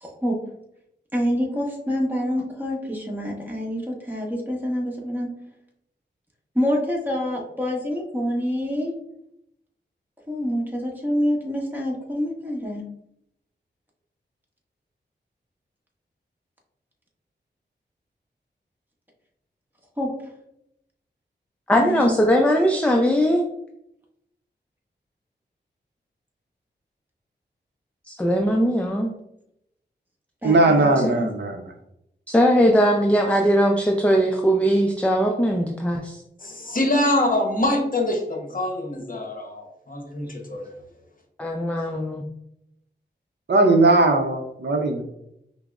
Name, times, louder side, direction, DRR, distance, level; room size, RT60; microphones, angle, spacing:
voice 1, 0.0-0.4 1.1-5.3 6.5-8.9 10.3-12.8 20.0-20.1 21.7-22.3 30.4-30.9 31.2-31.3, equal, 10° right, -2 dB, 1.0 m, -26 dB
voice 2, 21.7-23.4 28.1-29.1 31.0-31.1 32.3-36.2 41.4-42.2, equal, 5° left, 2 dB, 0.4 m, -20 dB
voice 3, 30.4-31.7 43.5-45.0, right 2 dB, 65° right, 4 dB, 0.5 m, -18 dB
voice 4, 36.4-40.7, left 1 dB, 45° left, 2 dB, 0.8 m, -24 dB
5.6 x 2.0 x 2.3 m, 0.79 s
wide cardioid pair, 60°, 19 cm